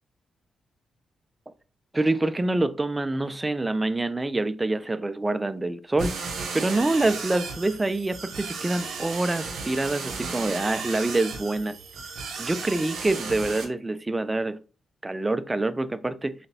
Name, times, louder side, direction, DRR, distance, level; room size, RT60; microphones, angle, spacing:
voice 1, 1.9-6.2 6.5-11.7 12.4-14.6 15.0-16.3, right 2 dB, 20° right, 0.4 m, -26 dB
sound 1, 6.0-13.6, right 4 dB, 75° right, 0.9 m, -34 dB
4.0 x 3.2 x 2.8 m
supercardioid pair, 60°, 0 cm